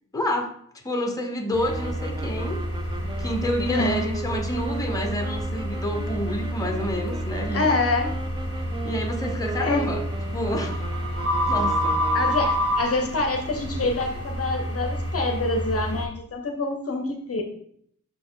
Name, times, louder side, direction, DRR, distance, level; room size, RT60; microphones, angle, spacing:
voice 1, 0.1-0.6 0.8-2.6 3.2-7.7 8.8-10.0 10.3-10.8 11.5-12.0, equal, 10° left, 4 dB, 0.9 m, -28 dB
sound 1, 1.5-16.0, equal, 45° right, 1.2 m, -28 dB
sound 2, 1.6-12.6, right 3 dB, 15° right, 0.3 m, -38 dB
voice 2, 3.7-4.0 7.5-8.1 9.6-9.9 12.1-17.4, left 2 dB, 45° left, 4 dB, 0.7 m, -26 dB
6.1 x 4.2 x 3.8 m, 0.67 s
wide cardioid pair, 135°, 32 cm